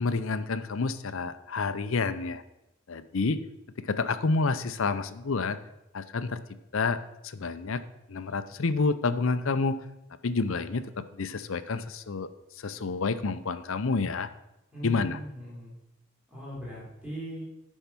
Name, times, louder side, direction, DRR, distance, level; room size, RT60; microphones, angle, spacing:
voice 1, 0.0-2.4 2.9-3.4 3.8-5.6 5.9-6.4 6.7-7.0 7.2-7.8 8.1-9.8 10.2-12.3 12.6-14.3 14.8-15.2, left 4 dB, 65° left, 12 dB, 0.6 m, -29 dB
voice 2, 14.7-15.8 16.3-17.4, right 1 dB, 5° right, -8 dB, 3.7 m, -39 dB
10.5 x 5.5 x 6.0 m, 0.91 s
head